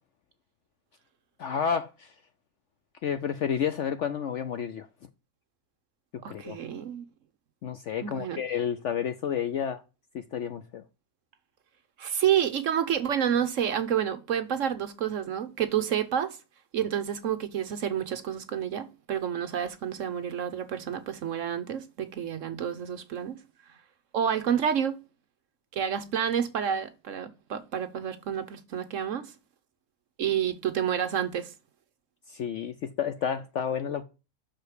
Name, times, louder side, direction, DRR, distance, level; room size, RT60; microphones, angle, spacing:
voice 1, 1.4-2.1 3.0-4.9 6.3-6.6 7.6-9.8 10.1-10.8 32.3-34.0, left 8 dB, 65° left, 0.7 m, -30 dB
voice 2, 6.2-7.0 8.0-8.4 12.0-16.4 16.7-23.4 24.1-25.0 25.7-29.3 30.2-31.5, right 9 dB, 60° right, 0.9 m, -29 dB
6.4 x 4.8 x 4.7 m
omnidirectional pair, 1.7 m